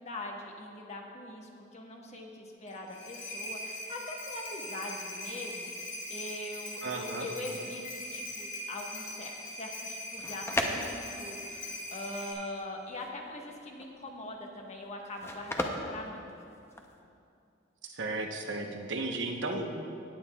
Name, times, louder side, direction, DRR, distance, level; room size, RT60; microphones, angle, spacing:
voice 1, 0.0-7.8 8.1-16.3, left 1 dB, 35° left, 0 dB, 1.2 m, -42 dB
sound 1, 2.7-12.3, left 1 dB, 90° left, 2.3 m, -41 dB
voice 2, 6.8-7.3 17.9-19.9, right 2 dB, 75° right, 3 dB, 0.9 m, -35 dB
sound 2, 10.1-17.0, left 1 dB, 15° left, 0.6 m, -37 dB
17.5 x 8.9 x 2.3 m, 2.5 s
head